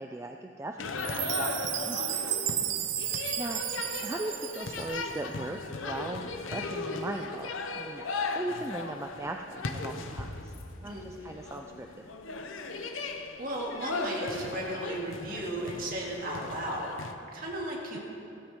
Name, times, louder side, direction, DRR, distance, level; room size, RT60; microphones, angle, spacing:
voice 1, 0.0-2.4 3.4-3.6 4.0-5.6 5.9-10.5 10.8-12.0, right 2 dB, 15° right, 4 dB, 0.3 m, -39 dB
sound 1, 0.8-17.1, left 3 dB, 80° left, 0.8 m, -37 dB
Chime, 1.0-5.2, right 11 dB, 65° right, 0.6 m, -33 dB
voice 2, 10.8-11.2 13.4-18.0, right 1 dB, 45° right, -3 dB, 2.3 m, -35 dB
15.5 x 14.5 x 3.6 m, 2.8 s
head